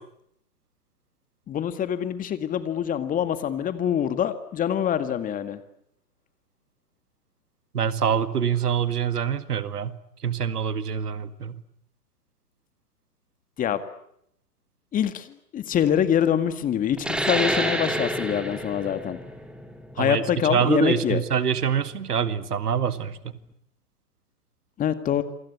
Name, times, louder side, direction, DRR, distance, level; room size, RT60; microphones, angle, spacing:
voice 1, 1.5-5.6 13.6-13.8 14.9-19.2 20.0-21.2 24.8-25.2, left 9 dB, 15° left, 11 dB, 2.0 m, -25 dB
voice 2, 7.7-9.9 10.2-11.6 20.0-23.2, right 7 dB, 70° right, 13 dB, 2.1 m, -25 dB
sound 1, 17.0-22.1, right 1 dB, ahead, 2.8 m, -29 dB
28.0 x 24.0 x 8.4 m, 0.73 s
figure-of-eight pair, 120°, 48 cm